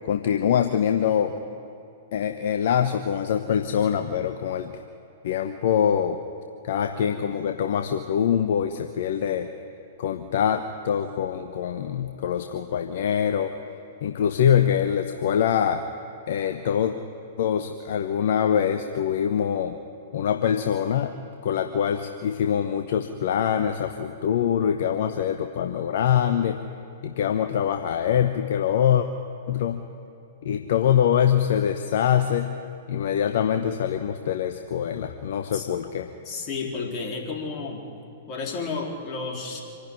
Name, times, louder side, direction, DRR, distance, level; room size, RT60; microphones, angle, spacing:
voice 1, 0.0-1.3 2.1-4.7 5.2-6.2 6.6-9.5 10.0-13.5 14.0-15.8 16.3-16.9 17.4-19.8 20.1-21.1 21.4-26.6 27.0-29.1 29.5-29.9 30.4-32.5 32.9-36.1, left 9 dB, 55° left, 7 dB, 1.0 m, -24 dB
voice 2, 35.5-35.8 36.2-37.8 38.3-39.6, left 4 dB, 35° left, 0 dB, 4.0 m, -32 dB
25.5 x 12.0 x 9.9 m, 2.8 s
figure-of-eight pair, 105°, 0 cm